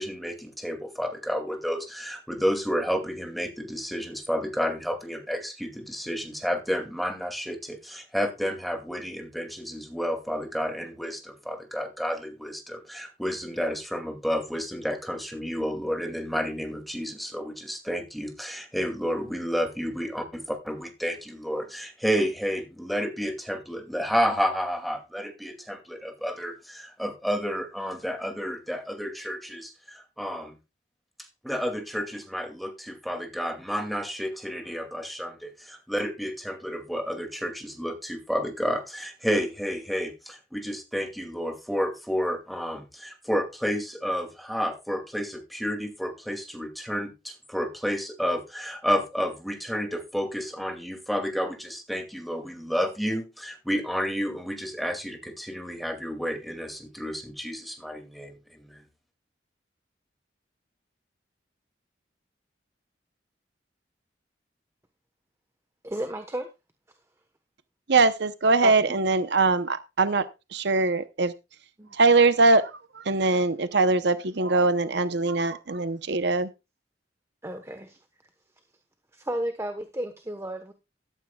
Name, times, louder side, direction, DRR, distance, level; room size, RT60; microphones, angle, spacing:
voice 1, 0.0-30.6 31.2-58.8, equal, ahead, 4 dB, 2.4 m, -31 dB
voice 2, 65.8-66.5 68.6-68.7 71.8-71.9 77.4-77.9 79.1-80.7, right 1 dB, 15° right, 7 dB, 1.1 m, -33 dB
voice 3, 67.9-70.2 70.5-71.3 71.9-76.5, right 3 dB, 65° right, 12 dB, 0.8 m, -22 dB
14.0 x 13.0 x 2.3 m, 0.26 s
head